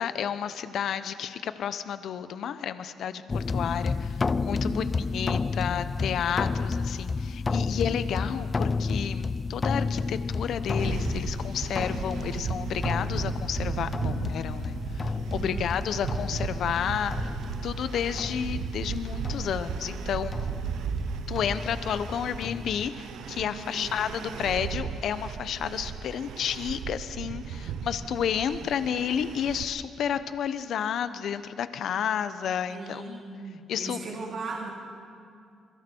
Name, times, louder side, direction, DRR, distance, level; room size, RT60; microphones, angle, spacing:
voice 1, 0.0-17.3 17.6-20.3 21.3-33.2 33.7-34.0, left 8 dB, 70° left, 12 dB, 0.9 m, -31 dB
sound 1, 3.3-22.9, left 4 dB, 30° left, 0.5 m, -31 dB
voice 2, 4.6-5.0 15.4-15.8 23.5-23.8 27.5-28.6 32.7-34.7, right 3 dB, 50° right, -2 dB, 3.0 m, -39 dB
sound 2, 10.8-29.6, right 7 dB, 80° right, 0.9 m, -36 dB
27.0 x 23.0 x 4.6 m, 2.3 s
cardioid pair, 90°, 0 cm